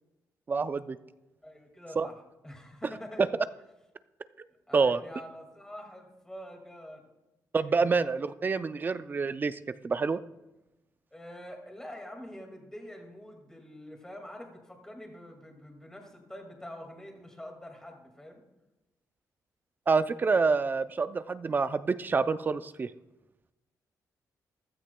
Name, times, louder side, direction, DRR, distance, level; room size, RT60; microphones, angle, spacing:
voice 1, 0.5-1.0 2.0-2.1 4.7-5.0 7.5-9.6 9.8-10.2 19.9-22.9, right 4 dB, 30° right, 13 dB, 0.4 m, -27 dB
voice 2, 1.4-3.2 4.7-7.1 7.7-7.9 11.1-18.4, equal, 10° left, 2 dB, 2.0 m, -46 dB
14.5 x 13.0 x 2.2 m, 1.0 s
cardioid pair, 130°, 6 cm